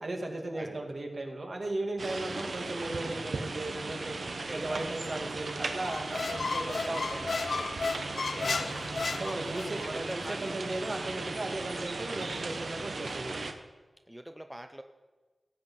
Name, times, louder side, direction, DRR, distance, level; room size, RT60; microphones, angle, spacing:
voice 1, 0.0-4.2 4.5-7.4 8.3-8.7 9.1-13.4, right 2 dB, 60° right, 2 dB, 2.1 m, -36 dB
sound 1, 2.0-13.5, right 3 dB, 85° right, 1.0 m, -37 dB
voice 2, 4.4-5.4 8.1-8.5 9.8-10.6 13.0-13.2 14.1-14.8, right 1 dB, 15° right, 6 dB, 0.7 m, -45 dB
Squeak, 5.8-9.9, left 4 dB, 85° left, 0.4 m, -33 dB
16.0 x 8.6 x 5.5 m, 1.3 s
wide cardioid pair, 55°, 0 cm